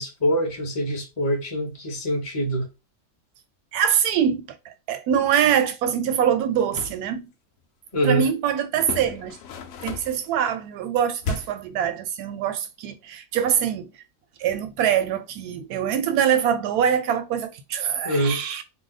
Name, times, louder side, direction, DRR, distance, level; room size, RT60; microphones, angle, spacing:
voice 1, 0.0-2.7 7.9-8.2 18.0-18.4, equal, 25° left, 0.9 m, -24 dB
voice 2, 3.7-7.3 8.0-9.4 9.8-13.9 14.4-18.6, right 8 dB, 85° right, 1.1 m, -24 dB
sound 1, 6.5-7.0 8.8-10.3 11.2-11.7, left 4 dB, 70° left, 0.9 m, -33 dB
2.8 x 2.1 x 3.9 m
omnidirectional pair, 1.6 m